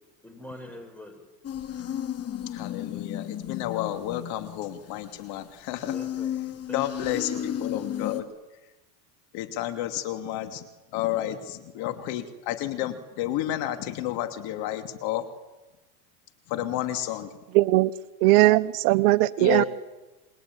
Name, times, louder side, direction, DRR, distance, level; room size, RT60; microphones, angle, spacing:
voice 1, 0.2-1.3 5.9-7.5, left 1 dB, 5° left, 5 dB, 7.0 m, -44 dB
sound 1, 1.4-5.5 5.8-8.2, left 10 dB, 30° left, 3.2 m, -33 dB
voice 2, 2.4-6.0 6.7-8.3 9.3-10.7 10.9-15.3 16.5-17.3 19.4-19.7, left 13 dB, 55° left, 8 dB, 2.9 m, -31 dB
voice 3, 17.5-17.9 18.2-19.6, right 19 dB, 70° right, 14 dB, 1.1 m, -19 dB
28.0 x 21.5 x 9.8 m, 1.1 s
supercardioid pair, 130°, 45 cm